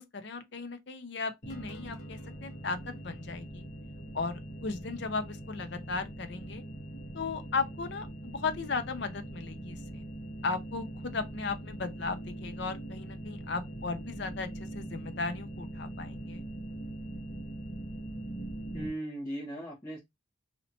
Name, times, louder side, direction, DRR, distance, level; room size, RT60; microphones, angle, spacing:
voice 1, 0.0-3.6 4.1-6.6 7.1-10.0 10.4-16.4, left 4 dB, 55° left, 0.6 m, -36 dB
sound 1, 1.4-18.9, right 1 dB, 40° left, 1.3 m, -42 dB
voice 2, 18.7-20.0, right 1 dB, 20° left, 1.2 m, -37 dB
4.2 x 2.8 x 2.8 m
head